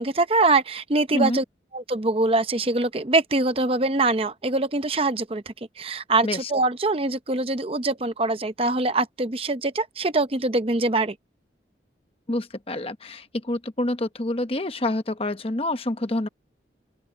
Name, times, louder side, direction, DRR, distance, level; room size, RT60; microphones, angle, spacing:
voice 1, 0.0-1.4 1.7-11.1, right 2 dB, 30° right, 0.8 m, -23 dB
voice 2, 12.3-16.3, left 1 dB, 30° left, 1.0 m, -27 dB
open air
head